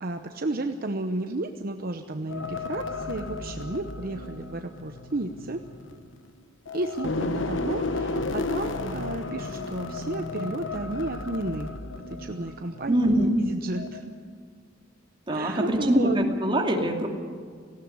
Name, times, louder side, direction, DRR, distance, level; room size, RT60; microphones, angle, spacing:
voice 1, 0.0-5.6 6.7-11.7 12.1-14.0 15.3-16.2, right 2 dB, 50° right, 6 dB, 0.9 m, -32 dB
sound 1, 2.3-6.3 6.7-13.4 13.7-14.0, left 3 dB, 80° left, 1.2 m, -33 dB
voice 2, 12.9-13.4 15.3-17.1, right 1 dB, 25° right, 2 dB, 2.4 m, -23 dB
18.0 x 16.5 x 9.6 m, 2.1 s
head